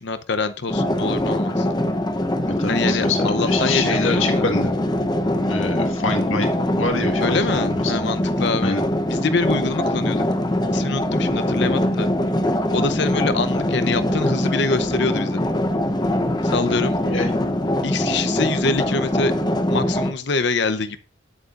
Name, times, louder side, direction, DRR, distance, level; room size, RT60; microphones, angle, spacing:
voice 1, 0.0-1.7 2.7-4.5 7.2-8.8 9.1-10.3 10.7-12.1 12.7-15.5 16.4-17.0 17.8-19.3 19.7-21.0, left 4 dB, 60° left, 0.8 m, -25 dB
sound 1, 0.7-20.1, left 1 dB, 20° left, 0.8 m, -22 dB
voice 2, 2.5-4.7 5.4-6.5 6.8-8.1 8.6-8.8 16.7-17.3 18.4-18.6, left 3 dB, 85° left, 1.7 m, -26 dB
9.7 x 8.4 x 2.5 m
head